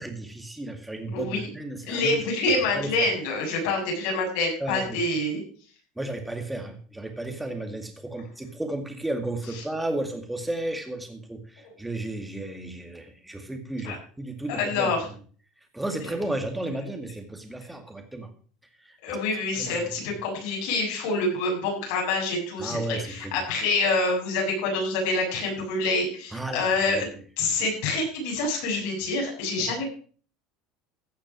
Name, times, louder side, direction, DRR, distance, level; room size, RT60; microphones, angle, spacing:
voice 1, 0.0-2.2 2.5-3.1 4.6-5.0 6.0-15.1 15.7-18.3 18.8-19.0 19.6-20.1 22.6-23.4 26.3-26.6 26.9-27.1 29.6-29.7, right 1 dB, 5° right, 5 dB, 2.1 m, -33 dB
voice 2, 1.1-1.5 1.9-5.4 11.6-11.7 13.8-14.0 14.5-15.0 16.0-16.1 19.0-27.1 27.4-29.9, left 3 dB, 70° left, -1 dB, 7.1 m, -26 dB
15.5 x 6.6 x 6.2 m, 0.42 s
cardioid pair, 155°, 0 cm